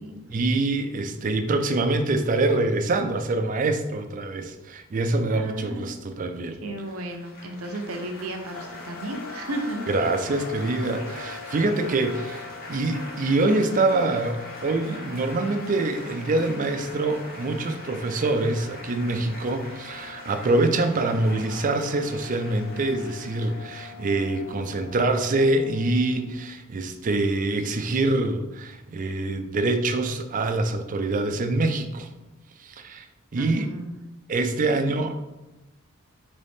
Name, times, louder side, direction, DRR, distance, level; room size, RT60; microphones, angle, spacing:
voice 1, 0.3-6.6 9.9-32.1 32.6-33.1 33.3-33.7 34.3-35.1, right 2 dB, 35° right, 7 dB, 0.4 m, -25 dB
voice 2, 5.3-5.9 6.6-9.9 33.4-33.9, right 1 dB, 80° right, 3 dB, 0.7 m, -34 dB
Laughter / Applause / Chatter, 6.8-26.0, left 1 dB, 45° left, 1.3 m, -43 dB
sound 1, 8.5-26.4, left 5 dB, 75° left, 0.5 m, -43 dB
4.1 x 3.6 x 3.4 m, 1.0 s
head